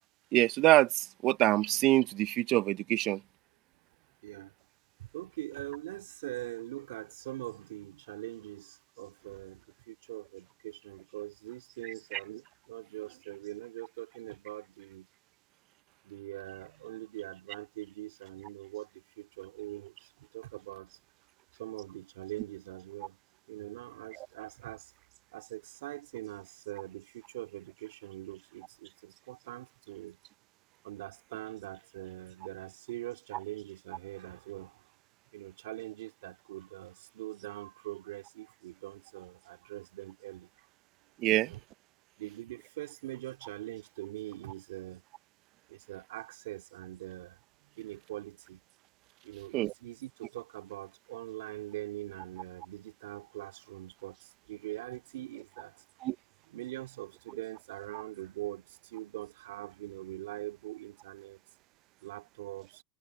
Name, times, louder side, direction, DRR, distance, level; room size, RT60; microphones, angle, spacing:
voice 1, 0.3-3.2 12.1-12.2 41.2-41.5 49.5-49.7 56.0-56.1, right 17 dB, 55° right, 0.8 m, -25 dB
voice 2, 4.2-4.5 5.0-15.1 16.1-19.9 20.2-20.9 21.6-23.2 23.5-24.9 25.3-30.2 30.8-34.8 35.3-40.5 41.3-41.6 42.2-45.0 45.7-47.4 47.7-48.6 49.2-55.8 56.5-61.4 62.0-62.8, right 16 dB, 80° right, 2.8 m, -43 dB
hypercardioid pair, 95°, 0 cm